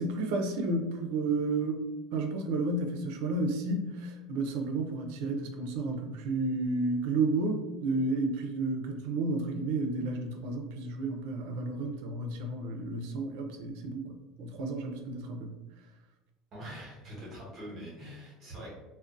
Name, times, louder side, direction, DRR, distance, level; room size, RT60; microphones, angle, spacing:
voice 1, 0.0-1.8 2.1-15.6, right 2 dB, 75° right, 3 dB, 0.4 m, -32 dB
voice 2, 16.5-18.7, equal, 35° right, -5 dB, 0.9 m, -44 dB
2.4 x 2.0 x 2.5 m, 1.1 s
cardioid pair, 160°, 0 cm